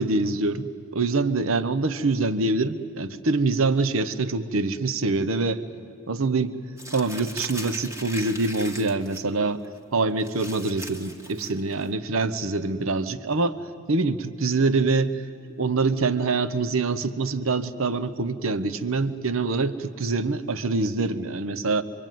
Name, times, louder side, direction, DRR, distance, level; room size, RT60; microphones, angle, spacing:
voice 1, 0.0-5.6 6.1-6.6 6.9-9.6 9.9-13.6 13.9-15.2 15.6-21.8, right 3 dB, 75° right, 13 dB, 0.9 m, -25 dB
Crumpling crinkling, 6.8-9.2 9.6-9.8 10.2-11.9, equal, 15° right, 1.6 m, -39 dB
26.5 x 23.5 x 9.2 m, 2.4 s
head